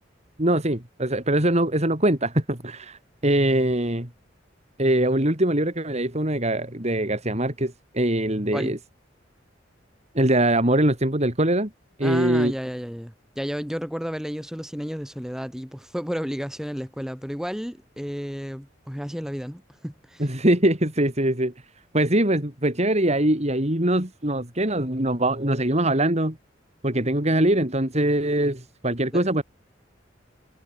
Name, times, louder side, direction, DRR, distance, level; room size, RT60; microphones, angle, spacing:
voice 1, 0.4-4.1 4.8-8.8 10.1-11.7 12.0-12.5 20.2-21.5 21.9-26.4 26.8-29.4, right 1 dB, 35° right, 4.5 m, -22 dB
voice 2, 12.0-20.3 29.1-29.4, equal, 5° right, 4.7 m, -32 dB
head